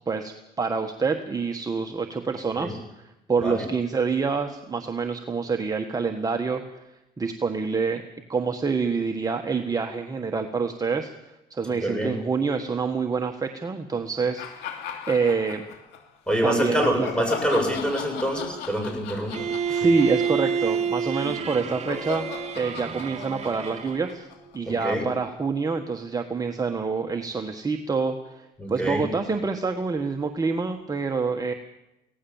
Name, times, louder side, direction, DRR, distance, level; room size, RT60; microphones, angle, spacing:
voice 1, 0.0-3.0 3.3-6.8 7.2-8.0 8.3-11.1 11.5-14.8 15.1-15.7 16.4-17.1 19.7-22.3 22.5-24.3 24.5-31.5, right 4 dB, 20° right, 4 dB, 1.4 m, -27 dB
voice 2, 11.8-12.2 16.3-19.9 24.7-25.1 28.6-29.1, equal, 5° left, 4 dB, 7.1 m, -26 dB
sound 1, 14.4-16.0 16.5-24.8, left 8 dB, 85° left, 3.0 m, -38 dB
Bowed string instrument, 19.3-24.2, right 7 dB, 40° right, 1.4 m, -29 dB
24.0 x 17.0 x 7.2 m, 0.93 s
cardioid pair, 110°, 17 cm